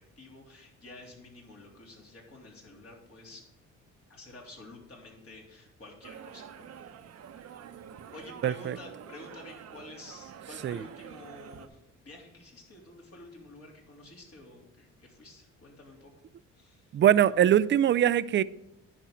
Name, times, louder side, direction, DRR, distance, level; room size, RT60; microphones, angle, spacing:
voice 1, 0.0-3.4 4.1-6.9 8.1-11.8 12.1-16.1 16.5-17.0, left 2 dB, 50° left, 3.4 m, -50 dB
sound 1, 6.0-11.7, right 8 dB, 55° right, 0.8 m, -47 dB
voice 2, 8.4-8.8 10.6-10.8 16.9-18.4, right 10 dB, 40° right, 0.4 m, -22 dB
10.0 x 5.3 x 6.1 m
cardioid pair, 90°, 30 cm